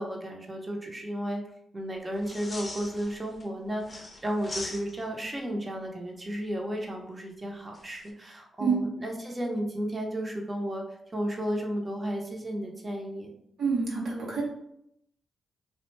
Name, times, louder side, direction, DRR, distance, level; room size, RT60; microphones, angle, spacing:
voice 1, 0.0-1.4 1.7-13.3, equal, 30° right, 1 dB, 0.7 m, -33 dB
sound 1, 2.2-3.4 3.8-5.2 7.7-8.1, left 2 dB, 35° left, 0.6 m, -41 dB
voice 2, 13.6-14.4, right 5 dB, 75° right, -4 dB, 0.8 m, -27 dB
2.4 x 2.1 x 3.1 m, 0.74 s
supercardioid pair, 50°, 0 cm